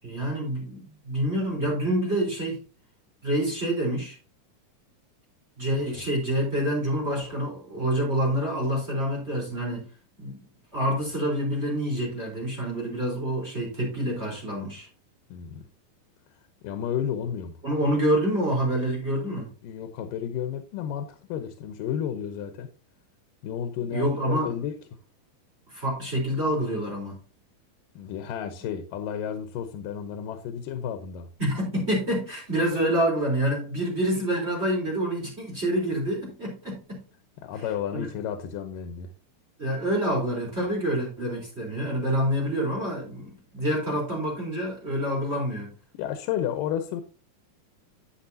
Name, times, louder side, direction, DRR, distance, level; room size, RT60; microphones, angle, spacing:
voice 1, 0.0-2.6 3.2-4.2 5.6-9.9 10.2-10.4 10.7-14.9 17.6-19.5 23.9-24.5 25.7-27.2 31.4-37.0 37.9-38.1 39.6-45.7, right 1 dB, 20° right, 4.1 m, -27 dB
voice 2, 15.3-15.7 16.6-17.6 19.6-22.7 23.4-24.7 28.0-31.3 37.4-39.1 45.9-47.0, left 9 dB, 90° left, 2.6 m, -32 dB
11.5 x 8.3 x 2.8 m
omnidirectional pair, 3.8 m